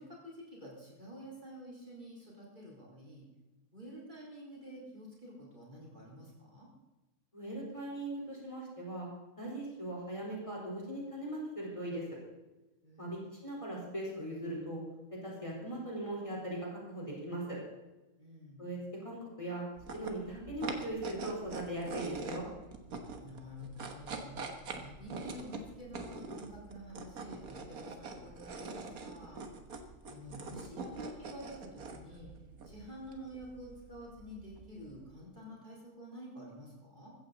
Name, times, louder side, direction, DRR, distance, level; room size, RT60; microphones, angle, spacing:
voice 1, 0.0-3.2 3.7-6.7 12.8-13.2 18.2-18.6 23.2-24.4 24.7-29.4 30.1-32.3 32.6-37.1, equal, 30° right, -4 dB, 4.4 m, -49 dB
voice 2, 7.3-9.1 9.4-12.0 13.0-14.8 15.2-17.6 18.6-19.6 19.9-22.5, right 1 dB, 20° left, -4 dB, 4.1 m, -39 dB
sound 1, 19.7-35.1, right 3 dB, 75° right, 1.8 m, -45 dB
15.5 x 14.5 x 4.0 m, 1.1 s
omnidirectional pair, 1.5 m